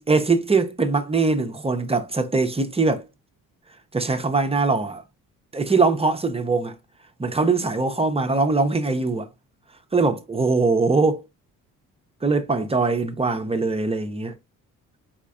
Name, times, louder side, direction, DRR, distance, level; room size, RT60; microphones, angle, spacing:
voice 1, 0.0-3.1 3.9-5.0 5.5-6.7 7.2-9.3 9.9-11.2 12.2-14.3, right 3 dB, 20° right, 0.7 m, -22 dB
4.4 x 4.3 x 2.4 m
cardioid pair, 90°, 32 cm